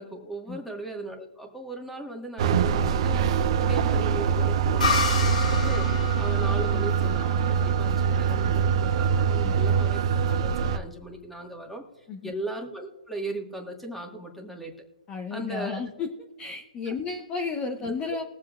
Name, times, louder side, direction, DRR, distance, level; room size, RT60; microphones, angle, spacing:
voice 1, 0.0-5.9 6.1-14.7 15.3-15.8 16.9-17.0 17.8-17.9, right 2 dB, ahead, 2 dB, 1.8 m, -38 dB
sound 1, 2.4-10.8, right 6 dB, 45° right, 0.8 m, -24 dB
sound 2, 4.8-8.3, left 4 dB, 75° left, 3.0 m, -30 dB
voice 2, 15.1-16.1 16.4-18.2, left 5 dB, 20° left, 1 dB, 1.0 m, -33 dB
21.5 x 7.4 x 2.5 m, 1.1 s
hypercardioid pair, 140°, 4 cm